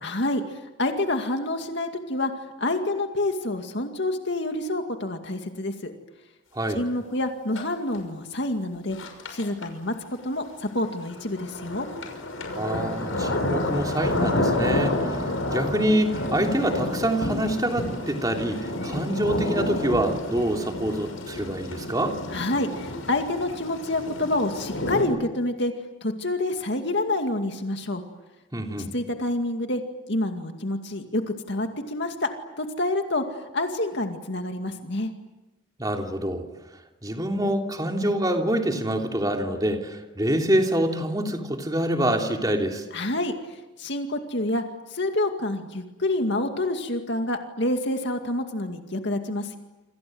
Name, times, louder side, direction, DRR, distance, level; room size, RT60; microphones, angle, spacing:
voice 1, 0.0-2.3 2.6-5.9 6.7-9.0 9.3-10.0 10.2-11.9 22.3-25.7 26.0-28.0 28.9-29.8 30.1-32.3 32.6-35.1 42.9-44.6 44.9-49.6, left 2 dB, 60° left, 5 dB, 2.2 m, -27 dB
sound 1, 7.6-7.7 7.9-8.0 8.9-9.6 10.8-25.0, left 1 dB, 85° left, 6.0 m, -29 dB
voice 2, 12.5-22.2 28.5-28.9 35.8-36.4 37.0-42.8, right 1 dB, 20° right, 2 dB, 3.1 m, -26 dB
28.0 x 27.0 x 7.9 m, 1.1 s
head